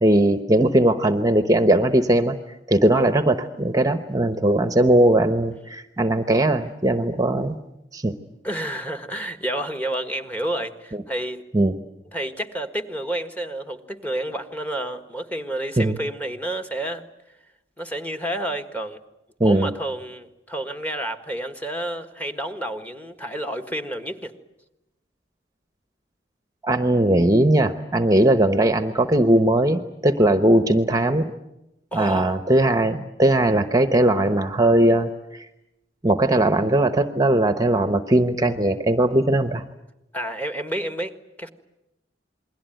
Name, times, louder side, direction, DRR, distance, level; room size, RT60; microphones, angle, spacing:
voice 1, 0.0-2.4 2.7-7.6 7.9-8.1 11.5-11.7 15.8-16.0 19.4-19.7 26.6-31.3 31.9-35.5 36.0-39.6, right 1 dB, 20° right, 0.9 m, -19 dB
voice 2, 8.4-11.4 12.1-17.0 17.8-19.0 19.4-24.3 31.9-32.4 40.1-41.5, right 1 dB, 10° left, 1.5 m, -30 dB
28.5 x 21.5 x 9.1 m
head